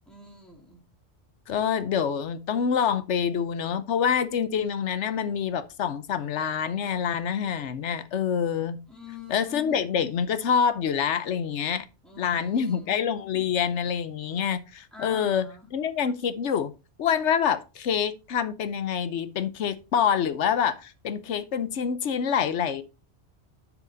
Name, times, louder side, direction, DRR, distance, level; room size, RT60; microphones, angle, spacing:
voice 1, 0.1-0.8 8.9-9.8 12.0-13.2 14.9-15.6, left 3 dB, ahead, 2.8 m, -45 dB
voice 2, 1.5-8.8 9.3-11.8 12.2-16.7 17.0-22.8, left 7 dB, 90° left, 1.1 m, -26 dB
9.7 x 5.0 x 3.9 m
omnidirectional pair, 1.2 m